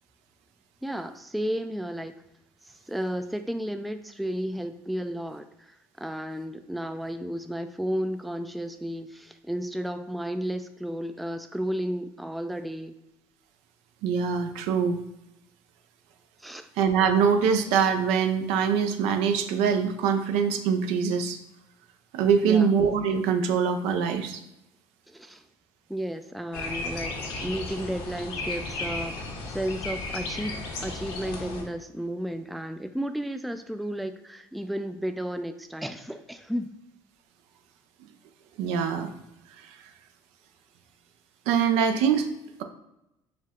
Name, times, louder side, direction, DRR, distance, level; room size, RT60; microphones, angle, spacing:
voice 1, 0.8-2.1 2.6-12.9 16.4-16.7 22.4-22.7 25.1-25.4 25.9-36.8, equal, ahead, 8 dB, 0.3 m, -33 dB
voice 2, 14.0-15.0 16.8-21.4 22.1-24.4 38.6-39.1 41.5-42.3, right 6 dB, 80° right, 7 dB, 0.5 m, -23 dB
sound 1, 26.5-31.6, left 2 dB, 75° left, 1.0 m, -34 dB
4.6 x 2.3 x 3.5 m, 0.89 s
supercardioid pair, 80°, 11 cm